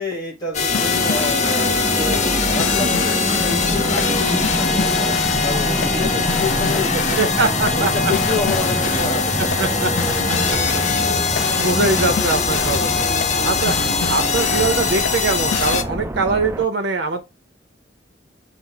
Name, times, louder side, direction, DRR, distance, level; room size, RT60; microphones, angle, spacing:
voice 1, 0.0-5.1 5.4-7.4 7.7-10.1, left 3 dB, 20° left, 1.4 m, -29 dB
sound 1, 0.5-15.8, left 5 dB, 40° left, 0.6 m, -22 dB
sound 2, 0.7-15.8, left 7 dB, 90° left, 0.3 m, -30 dB
sound 3, 0.7-16.7, right 1 dB, 15° right, 0.3 m, -26 dB
voice 2, 7.1-7.9 9.6-9.9 11.1-11.2 11.6-13.0 13.4-17.2, right 3 dB, 65° right, 0.6 m, -22 dB
5.6 x 2.0 x 4.5 m
head